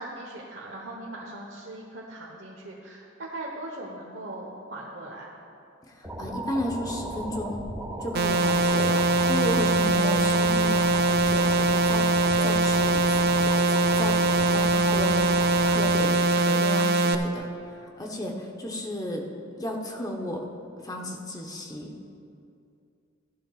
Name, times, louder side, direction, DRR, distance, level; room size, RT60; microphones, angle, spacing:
voice 1, 0.0-5.3, right 1 dB, 70° right, -3 dB, 1.1 m, -39 dB
voice 2, 5.9-7.7 8.0-12.1 12.4-17.5 17.8-19.3 19.6-20.5 20.8-21.9, left 1 dB, 20° left, 1 dB, 1.0 m, -33 dB
sound 1, 6.0-16.0, right 1 dB, 10° right, 1.6 m, -36 dB
sound 2, 8.1-17.1, right 2 dB, 55° right, 0.5 m, -22 dB
15.5 x 10.5 x 2.5 m, 2.5 s
head